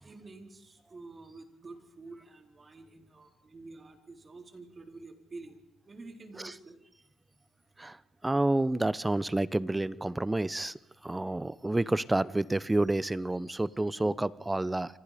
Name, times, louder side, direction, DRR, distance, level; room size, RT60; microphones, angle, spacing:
voice 1, 0.0-5.6 5.8-6.8, right 3 dB, 30° right, 4.3 m, -48 dB
voice 2, 7.8-10.8 11.0-15.0, right 2 dB, 15° right, 0.8 m, -29 dB
29.5 x 25.5 x 5.2 m
cardioid pair, 90°, 0 cm